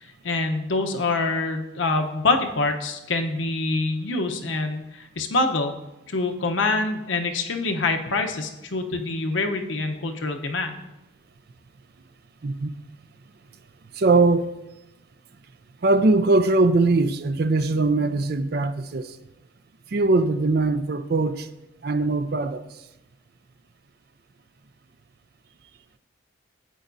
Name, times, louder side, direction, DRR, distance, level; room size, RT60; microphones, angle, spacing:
voice 1, 0.2-5.7 6.1-10.8, left 3 dB, 80° left, 0.8 m, -25 dB
voice 2, 13.9-14.5 15.8-19.2 19.9-21.5 21.8-22.6, right 3 dB, 50° right, 0.4 m, -21 dB
11.0 x 8.1 x 2.6 m
head